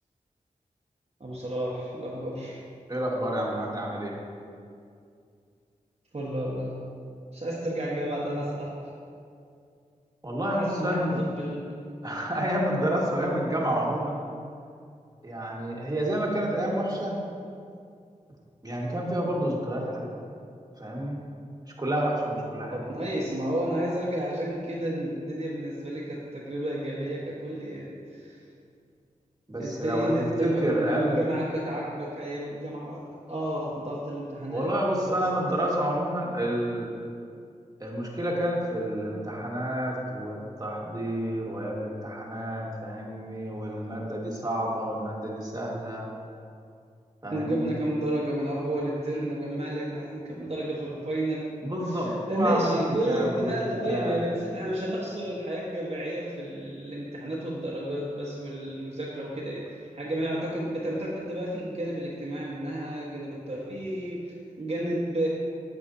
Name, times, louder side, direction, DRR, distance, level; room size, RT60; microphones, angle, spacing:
voice 1, 1.2-2.6 6.1-6.8 7.3-8.9 10.6-11.7 22.7-28.4 29.6-33.0 33.3-34.7 35.1-35.4 47.3-51.5 51.8-65.3, right 1 dB, 45° right, -6 dB, 1.3 m, -31 dB
voice 2, 2.9-4.2 10.2-11.2 12.0-14.2 15.2-17.2 18.6-20.2 20.8-21.2 21.8-22.8 29.5-30.1 30.4-31.2 34.5-36.9 37.8-46.1 47.2-47.7 51.6-52.8 53.0-54.3, right 1 dB, 25° right, -3 dB, 1.7 m, -29 dB
8.6 x 7.7 x 2.7 m, 2.4 s
cardioid pair, 40°, 14 cm